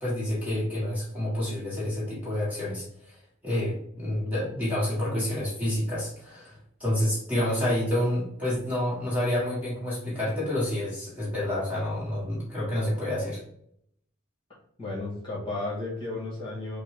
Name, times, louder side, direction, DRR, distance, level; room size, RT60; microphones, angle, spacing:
voice 1, 0.0-3.1 3.4-13.4, left 1 dB, 10° right, -8 dB, 1.5 m, -28 dB
voice 2, 14.8-16.8, left 2 dB, 25° left, -5 dB, 1.7 m, -33 dB
6.2 x 2.3 x 3.7 m, 0.71 s
head